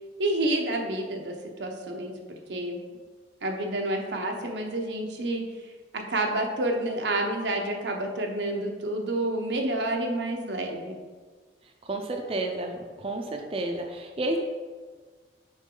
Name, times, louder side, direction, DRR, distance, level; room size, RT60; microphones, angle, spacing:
voice 1, 0.2-1.3 1.6-2.8 3.4-5.5 5.9-11.0, right 1 dB, 85° right, 2 dB, 0.9 m, -29 dB
voice 2, 11.8-14.4, right 2 dB, 35° right, 2 dB, 0.5 m, -31 dB
6.3 x 4.7 x 3.8 m, 1.5 s
head